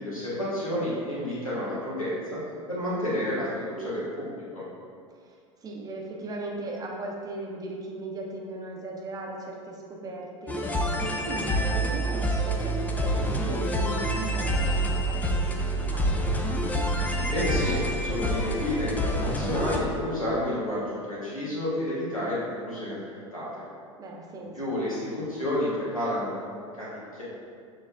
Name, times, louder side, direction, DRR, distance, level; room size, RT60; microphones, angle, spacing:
voice 1, 0.0-2.4 2.7-4.6 17.2-23.0 23.3-23.7 24.5-26.9 27.1-27.2, left 1 dB, 90° left, -8 dB, 1.3 m, -30 dB
voice 2, 5.6-10.6 11.0-16.4 24.0-24.6, right 2 dB, 20° right, 0 dB, 0.7 m, -37 dB
sound 1, 10.5-19.8, equal, 10° left, 0.4 m, -27 dB
6.3 x 3.2 x 2.4 m, 2.2 s
figure-of-eight pair, 80°, 17 cm